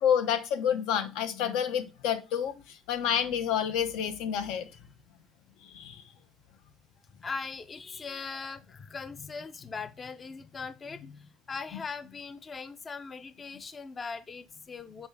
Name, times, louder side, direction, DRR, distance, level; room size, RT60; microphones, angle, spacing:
voice 1, 0.0-4.7 5.7-6.0, left 9 dB, 85° left, 1.0 m, -29 dB
voice 2, 7.2-15.1, left 4 dB, 20° left, 0.4 m, -40 dB
7.0 x 4.5 x 3.3 m
cardioid pair, 155°, 0 cm